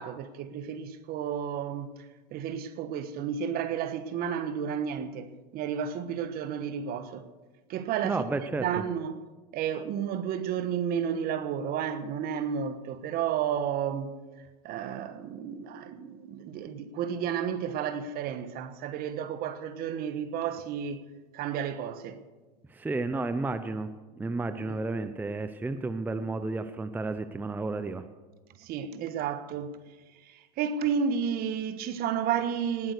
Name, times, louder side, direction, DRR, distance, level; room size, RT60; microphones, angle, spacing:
voice 1, 0.0-2.0 2.3-7.2 7.7-8.3 8.6-9.2 9.5-14.1 14.6-21.0 21.3-22.2 24.6-24.8 28.6-29.8 30.2-32.9, right 8 dB, 45° right, 1.3 m, -32 dB
voice 2, 8.0-8.8 22.7-23.9 24.2-28.1, right 3 dB, 10° right, 0.6 m, -32 dB
19.0 x 8.8 x 6.6 m
supercardioid pair, 120°, 21 cm